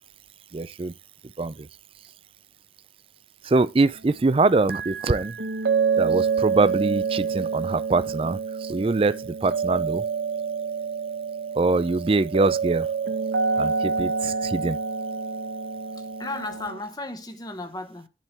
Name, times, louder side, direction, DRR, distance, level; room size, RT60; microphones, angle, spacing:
voice 1, 0.5-0.9 1.4-1.7 3.4-5.4 6.0-10.0 11.6-12.9 13.6-14.8, right 3 dB, 30° right, 0.4 m, -23 dB
sound 1, 4.7-16.8, right 5 dB, 75° right, 0.9 m, -27 dB
voice 2, 13.5-13.8 16.0-18.1, left 2 dB, 20° left, 0.9 m, -35 dB
11.0 x 3.7 x 4.3 m
head